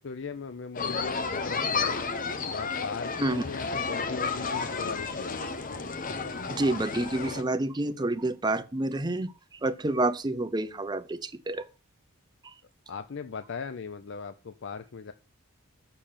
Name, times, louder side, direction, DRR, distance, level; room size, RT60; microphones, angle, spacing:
voice 1, 0.0-2.0 2.5-5.6 12.9-15.1, left 5 dB, 60° left, 0.5 m, -39 dB
sound 1, 0.7-7.4, left 4 dB, 40° left, 1.0 m, -32 dB
voice 2, 6.5-11.7 12.4-12.5, right 2 dB, 20° right, 0.6 m, -29 dB
6.8 x 5.7 x 7.4 m
head